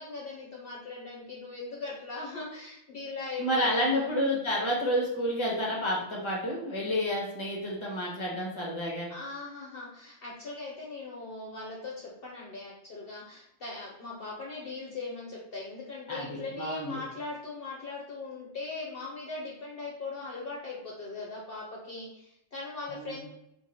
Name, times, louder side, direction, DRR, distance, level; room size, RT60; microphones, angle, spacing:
voice 1, 0.0-4.1 9.1-23.3, left 3 dB, 55° left, -3 dB, 1.0 m, -40 dB
voice 2, 3.4-9.1 16.1-17.0 22.9-23.3, equal, 25° left, -2 dB, 1.1 m, -30 dB
3.8 x 2.7 x 4.4 m, 0.81 s
omnidirectional pair, 1.2 m